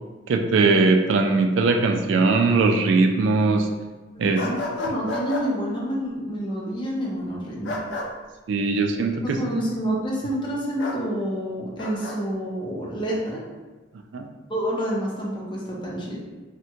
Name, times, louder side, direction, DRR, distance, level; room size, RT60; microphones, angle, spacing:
voice 1, 0.3-3.7 4.2-4.4 4.9-5.0 8.5-9.4 14.1-14.3, right 3 dB, 85° right, 4 dB, 0.3 m, -20 dB
voice 2, 4.2-7.8 9.2-13.4 14.5-16.2, equal, 25° left, -4 dB, 0.6 m, -28 dB
sound 1, 4.4-5.5 7.6-8.1 10.8-11.0 11.8-12.2, left 2 dB, 75° left, 0.4 m, -30 dB
3.4 x 2.1 x 2.8 m, 1.2 s
head